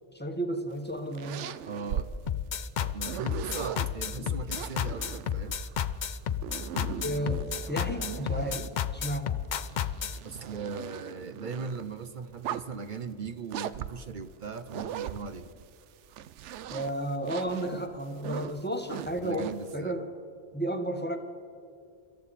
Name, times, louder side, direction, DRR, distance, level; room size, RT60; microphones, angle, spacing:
voice 1, 0.1-1.6 4.2-4.3 7.0-8.6 8.9-9.4 16.7-20.1 20.5-21.2, right 1 dB, 10° left, 5 dB, 1.2 m, -33 dB
sound 1, 0.7-3.9 4.4-8.9 9.4-11.8 12.3-12.9 13.5-15.6 16.0-19.7, right 10 dB, 85° right, 0.9 m, -39 dB
voice 2, 1.7-2.1 2.8-5.6 10.2-15.5 19.2-20.0, right 4 dB, 50° right, 10 dB, 0.8 m, -39 dB
sound 2, 2.3-10.2, left 8 dB, 50° left, 0.6 m, -31 dB
25.0 x 14.0 x 4.1 m, 2.5 s
omnidirectional pair, 1.2 m